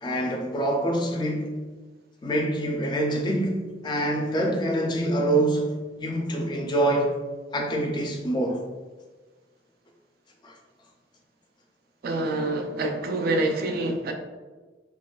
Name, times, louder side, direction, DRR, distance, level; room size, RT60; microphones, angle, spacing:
voice 1, 0.0-1.6 2.2-7.2 7.5-8.6 10.4-10.5, right 1 dB, 25° left, 0.3 m, -25 dB
voice 2, 12.0-14.1, right 2 dB, 55° right, 0.3 m, -26 dB
2.8 x 2.3 x 2.2 m
head